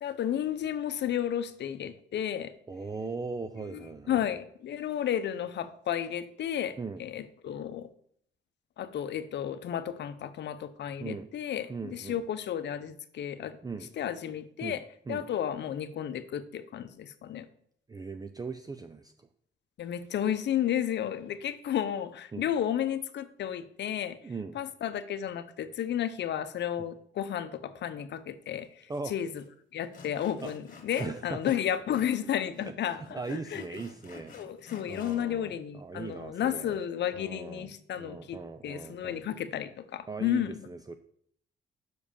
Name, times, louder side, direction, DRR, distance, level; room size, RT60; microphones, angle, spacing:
voice 1, 0.0-2.5 3.6-7.9 8.8-13.6 14.0-14.8 15.1-17.5 19.8-24.2 24.5-29.4 29.7-33.8 34.3-40.7, left 10 dB, 60° left, 12 dB, 0.7 m, -32 dB
voice 2, 2.7-4.2 6.8-7.0 11.0-11.3 11.7-12.2 13.6-13.9 14.6-14.8 15.1-15.2 17.9-19.1 22.3-22.5 24.2-24.6 28.9-29.1 30.4-30.5 31.0-31.4 32.6-32.7 33.1-34.4 34.8-36.7 37.1-39.3 40.1-41.0, right 4 dB, 20° right, 8 dB, 0.5 m, -39 dB
Sawing, 28.9-29.0 29.3-29.5 29.9-32.2 32.4-35.2, left 4 dB, 45° left, 1.6 m, -52 dB
6.2 x 5.0 x 6.9 m, 0.67 s
cardioid pair, 90°, 20 cm